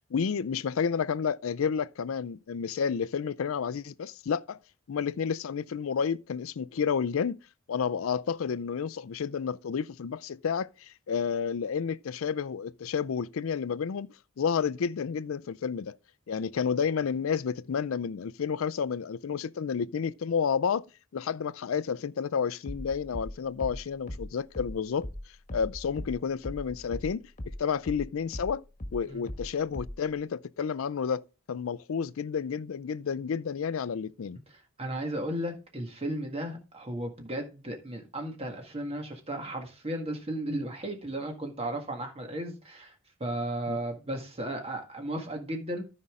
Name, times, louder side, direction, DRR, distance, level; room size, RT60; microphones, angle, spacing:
voice 1, 0.1-4.6 4.9-7.4 7.7-16.0 16.3-20.9 21.1-25.1 25.5-27.2 27.6-28.6 28.9-34.4 43.7-43.8, left 6 dB, 70° left, 0.4 m, -30 dB
sound 1, 22.7-27.6 27.9-30.1, left 1 dB, 35° left, 1.6 m, -38 dB
voice 2, 34.5-42.9 43.2-45.8, right 1 dB, 30° right, 1.7 m, -35 dB
14.0 x 5.4 x 3.7 m
head